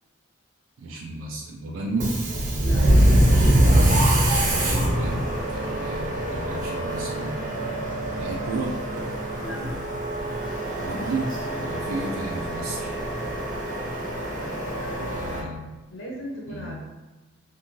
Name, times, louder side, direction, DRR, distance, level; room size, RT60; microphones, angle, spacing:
voice 1, 0.8-2.2 4.5-7.5 8.2-8.8 10.8-11.3 11.6-13.0 15.1-15.6 16.5-16.7, right 2 dB, 85° right, -2 dB, 0.4 m, -33 dB
Subway metro underground, 1.9-15.4, right 1 dB, 40° right, 0.7 m, -24 dB
voice 2, 14.7-15.2 15.9-16.7, equal, 70° left, -3 dB, 0.8 m, -37 dB
2.6 x 2.6 x 2.9 m, 1.1 s
head